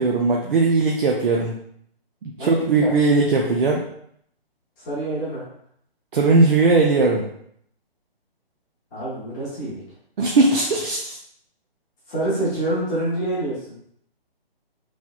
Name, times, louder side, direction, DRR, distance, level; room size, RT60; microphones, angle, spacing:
voice 1, 0.0-1.5 2.2-3.8 6.1-7.3 10.2-11.2, right 3 dB, 60° right, -1 dB, 0.5 m, -19 dB
voice 2, 2.4-2.9 4.8-5.4 8.9-9.8 12.1-13.6, right 1 dB, 20° left, -9 dB, 0.8 m, -26 dB
3.1 x 2.9 x 2.3 m, 0.68 s
figure-of-eight pair, 145°, 30 cm